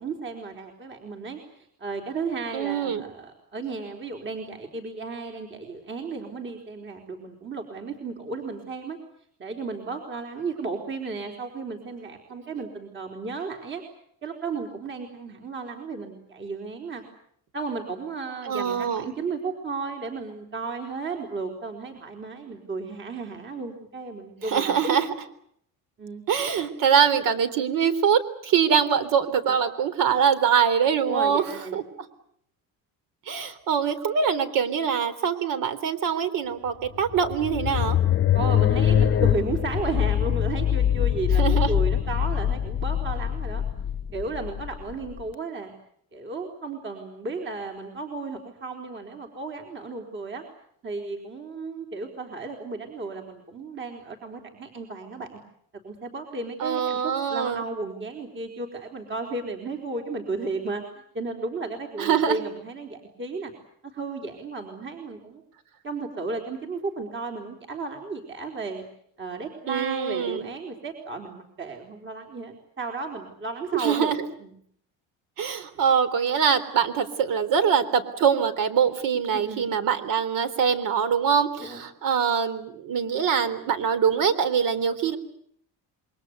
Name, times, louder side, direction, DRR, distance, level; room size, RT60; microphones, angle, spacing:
voice 1, 0.0-9.0 9.4-13.8 14.2-17.0 17.5-25.0 26.0-26.2 29.5-29.6 31.1-31.8 38.3-43.6 44.1-45.7 46.1-50.4 50.8-55.4 55.8-60.8 61.1-63.5 63.8-65.4 65.8-68.8 69.2-74.1 74.4-74.5 79.3-79.6 81.6-81.8, right 3 dB, 30° right, 3 dB, 4.3 m, -34 dB
voice 2, 2.5-3.0 18.5-19.1 24.4-25.1 26.3-31.4 31.7-31.8 33.3-38.0 41.4-41.7 56.6-57.6 62.0-62.4 69.7-70.5 73.7-74.2 75.4-85.2, right 7 dB, 60° right, 12 dB, 3.7 m, -23 dB
sound 1, 36.8-45.2, left 10 dB, 35° left, 1.0 m, -23 dB
28.0 x 23.5 x 8.2 m, 0.68 s
cardioid pair, 140°, 36 cm